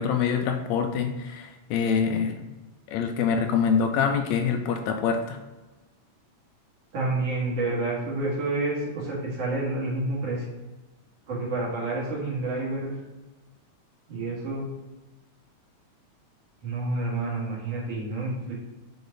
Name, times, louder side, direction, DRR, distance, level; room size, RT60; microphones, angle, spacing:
voice 1, 0.0-2.4 2.9-5.4, left 6 dB, 80° left, 5 dB, 1.8 m, -25 dB
voice 2, 6.9-10.5 11.3-12.9 14.1-14.7 16.6-18.5, right 2 dB, 60° right, -5 dB, 2.9 m, -29 dB
6.7 x 4.6 x 4.0 m, 1.1 s
omnidirectional pair, 3.3 m